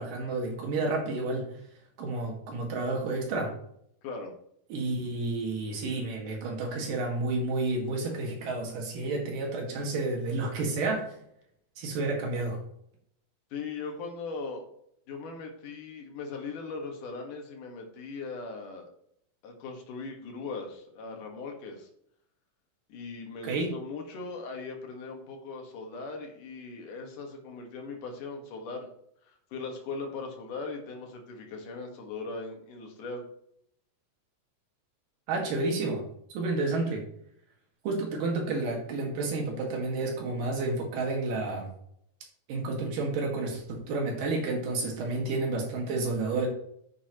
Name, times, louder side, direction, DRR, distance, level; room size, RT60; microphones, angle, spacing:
voice 1, 0.0-1.5 2.0-3.5 4.7-11.1 11.8-12.6 23.4-23.7 35.3-36.0 36.3-37.0 37.8-41.7 42.5-46.5, right 3 dB, 90° right, 0 dB, 3.6 m, -30 dB
voice 2, 4.0-4.3 13.5-14.6 15.1-18.9 19.4-21.9 22.9-28.9 29.3-33.2, left 4 dB, 75° left, 2 dB, 3.2 m, -39 dB
9.7 x 8.5 x 3.0 m, 0.70 s
omnidirectional pair, 3.7 m